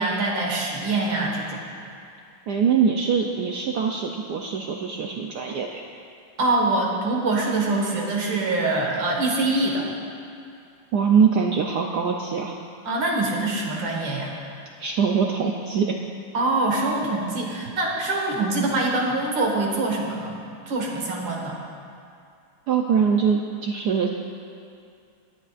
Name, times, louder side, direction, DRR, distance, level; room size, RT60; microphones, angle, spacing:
voice 1, 0.0-1.6 6.4-9.9 12.8-14.3 16.3-20.4 20.7-21.6, right 2 dB, 60° right, -1 dB, 2.3 m, -24 dB
voice 2, 2.5-5.8 10.9-12.6 14.8-16.0 22.7-24.1, right 6 dB, 75° right, 1 dB, 0.9 m, -23 dB
19.5 x 9.9 x 2.5 m, 2.4 s
omnidirectional pair, 2.4 m